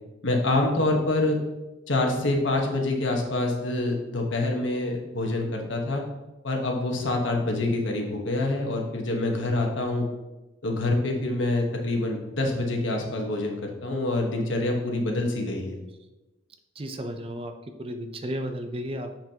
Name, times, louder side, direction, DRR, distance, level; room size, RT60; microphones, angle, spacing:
voice 1, 0.2-1.4 1.9-6.0 6.4-10.1 10.6-15.8, left 2 dB, 85° left, 1 dB, 1.2 m, -26 dB
voice 2, 16.8-17.5 17.8-19.1, equal, 30° right, 7 dB, 0.5 m, -33 dB
7.2 x 5.9 x 2.9 m, 1.1 s
head